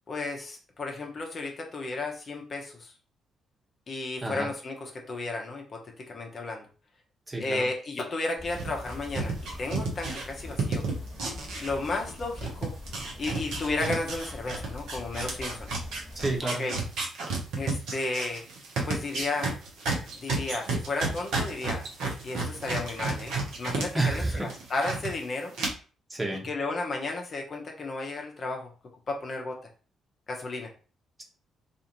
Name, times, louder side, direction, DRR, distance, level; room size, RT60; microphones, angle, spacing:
voice 1, 0.1-2.9 3.9-6.7 7.4-10.8 11.6-12.7 13.2-15.7 16.6-16.7 17.6-18.4 18.8-19.6 20.1-21.9 22.2-25.5 26.4-28.7 29.1-29.6 30.3-30.7, left 3 dB, 45° left, 1 dB, 0.7 m, -33 dB
voice 2, 7.3-7.7 16.1-16.6 23.9-24.5 26.1-26.5, right 2 dB, 20° right, 0 dB, 1.0 m, -29 dB
sound 1, 8.4-16.4, left 2 dB, 5° left, 1.2 m, -43 dB
sound 2, 8.5-12.1 12.4-23.9 24.2-25.1 25.5-25.7, right 3 dB, 70° right, 0.8 m, -31 dB
2.5 x 2.4 x 2.9 m, 0.38 s
hypercardioid pair, 45°, 0 cm